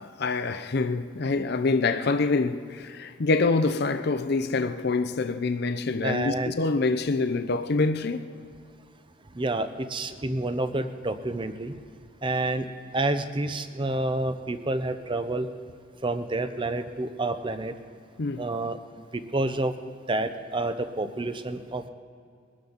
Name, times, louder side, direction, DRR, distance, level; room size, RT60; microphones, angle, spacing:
voice 1, 0.0-8.2 18.2-18.5, left 3 dB, 55° left, 0.6 m, -26 dB
voice 2, 6.0-6.5 9.4-11.7 12.2-12.7 12.9-15.5 16.0-17.7 18.4-18.8 19.1-19.7 20.1-21.9, right 2 dB, 25° right, 0.6 m, -28 dB
22.0 x 12.5 x 4.0 m
head